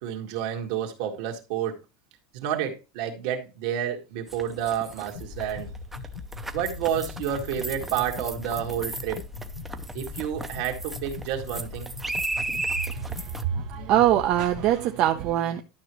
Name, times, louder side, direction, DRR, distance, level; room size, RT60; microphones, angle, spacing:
voice 1, 0.0-1.8 2.3-5.7 6.5-9.2 9.9-11.9, right 9 dB, 70° right, 1.9 m, -30 dB
sound 1, 4.3-13.4, right 2 dB, 5° right, 0.6 m, -35 dB
sound 2, 5.1-14.7, left 5 dB, 60° left, 0.9 m, -39 dB
voice 2, 13.5-15.6, right 12 dB, 50° right, 0.7 m, -23 dB
11.5 x 5.9 x 3.1 m
supercardioid pair, 145°, 3 cm